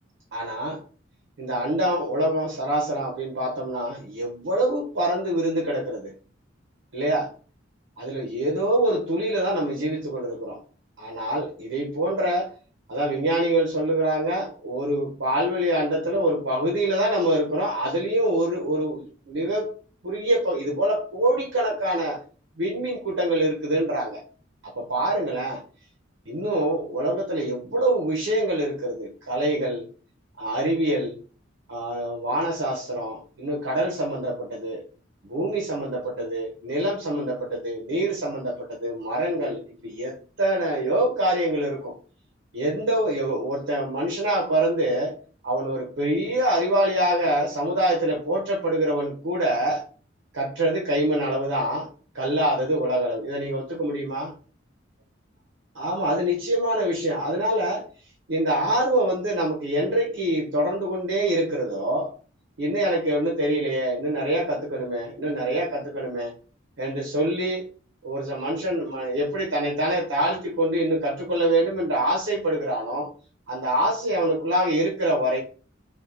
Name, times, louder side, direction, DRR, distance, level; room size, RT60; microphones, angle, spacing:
voice 1, 0.3-0.8 1.4-6.1 6.9-7.3 8.0-10.6 11.0-12.5 12.9-19.7 20.0-22.2 22.6-24.2 24.6-25.6 26.3-29.9 30.4-31.2 31.7-34.8 35.3-41.9 42.5-45.1 45.4-49.8 50.3-51.9 52.1-54.3 55.8-57.8 58.3-62.1 62.6-66.3 66.8-67.6 68.0-73.1 73.5-75.4, right 1 dB, 85° right, -1 dB, 0.8 m, -25 dB
4.4 x 2.3 x 2.7 m, 0.40 s
head